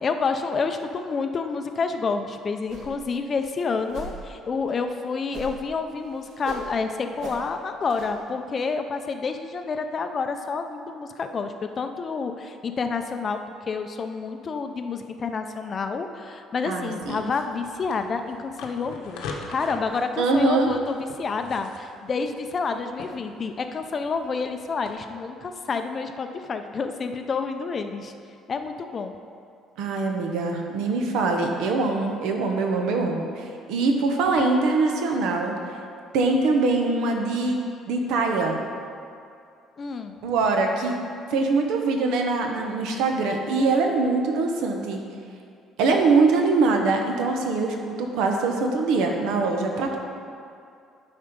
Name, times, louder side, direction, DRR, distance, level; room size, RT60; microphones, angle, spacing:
voice 1, 0.0-13.4 13.7-19.2 19.5-28.1 28.5-29.1 39.8-40.2, left 4 dB, 30° left, 7 dB, 0.5 m, -29 dB
sound 1, 2.7-3.1 3.4-3.5 3.9-4.2 5.3-5.7 6.0-6.7 7.2-7.4 7.9-8.1, right 2 dB, 65° right, 1.7 m, -37 dB
voice 2, 16.6-17.2 20.2-20.7 29.8-35.5 36.1-37.6 37.9-38.6 40.2-41.0 41.3-45.0 45.8-50.0, right 3 dB, 85° right, 3 dB, 1.1 m, -23 dB
sound 2, 17.0-24.9, left 4 dB, 90° left, 1.0 m, -43 dB
11.5 x 4.4 x 5.2 m, 2.4 s
cardioid pair, 155°, 0 cm